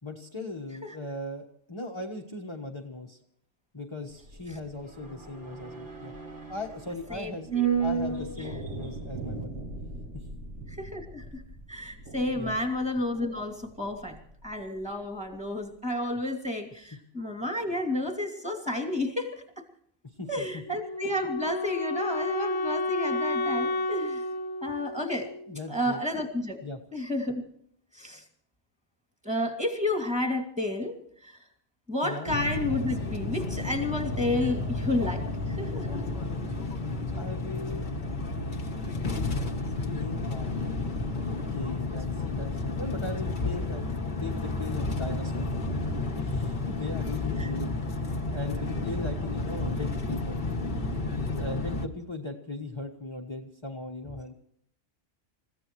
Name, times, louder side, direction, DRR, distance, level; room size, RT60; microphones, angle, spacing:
voice 1, 0.0-3.2 3.7-6.1 6.5-7.5 7.8-9.6 10.1-10.3 12.3-12.5 20.2-20.6 25.5-26.0 26.6-26.8 32.0-32.3 37.2-37.9 39.2-39.7 39.9-40.5 41.2-43.9 44.2-45.5 46.2-48.0 48.3-50.4 51.1-54.3, left 2 dB, 20° left, 1 dB, 1.3 m, -38 dB
sound 1, 4.1-14.6 14.8-14.9, right 6 dB, 65° right, 4.0 m, -35 dB
voice 2, 7.1-7.7 10.7-11.4 11.7-19.6 20.3-24.3 24.6-25.3 25.7-26.6 26.9-27.4 27.9-28.2 29.2-31.4 31.9-36.0 47.4-47.5, left 1 dB, 5° right, 2 dB, 2.6 m, -31 dB
Wind instrument woodwind instrument, 20.6-25.7, left 2 dB, 80° left, 1.2 m, -31 dB
sound 2, 32.3-51.9, left 2 dB, 40° left, 1.3 m, -31 dB
29.5 x 15.5 x 3.1 m, 0.66 s
omnidirectional pair, 1.3 m